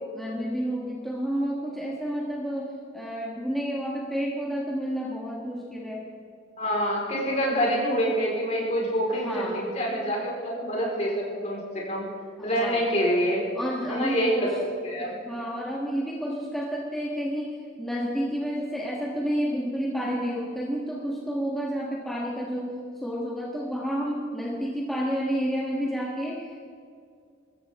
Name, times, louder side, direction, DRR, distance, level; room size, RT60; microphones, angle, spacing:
voice 1, 0.1-6.1 9.1-9.6 12.4-12.8 13.5-14.6 15.0-26.6, equal, ahead, -5 dB, 1.5 m, -30 dB
voice 2, 6.6-12.0 12.4-13.4 13.9-14.5 14.8-15.2, equal, 35° left, -3 dB, 4.7 m, -26 dB
23.0 x 14.5 x 3.7 m, 2.3 s
head